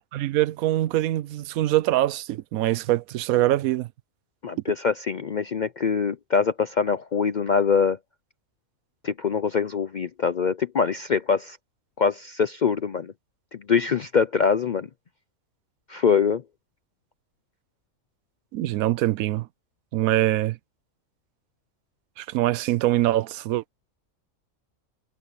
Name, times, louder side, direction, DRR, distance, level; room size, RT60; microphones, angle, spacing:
voice 1, 0.1-3.9 18.5-19.5 19.9-20.6 22.2-23.6, right 15 dB, 85° right, 1.0 m, -23 dB
voice 2, 4.4-8.0 9.0-11.6 12.0-13.1 13.5-14.9 15.9-16.4, left 6 dB, 60° left, 0.5 m, -23 dB
omnidirectional pair, 1.5 m